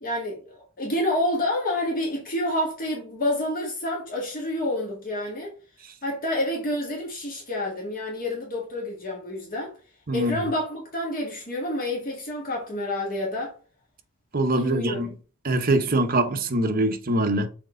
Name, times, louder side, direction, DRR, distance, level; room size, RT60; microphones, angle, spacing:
voice 1, 0.0-5.5 6.0-9.7 10.1-13.5 14.5-15.0, left 1 dB, 45° left, 1.7 m, -28 dB
voice 2, 14.3-15.1 15.4-17.5, right 1 dB, 45° right, 0.9 m, -23 dB
6.2 x 4.2 x 3.7 m
head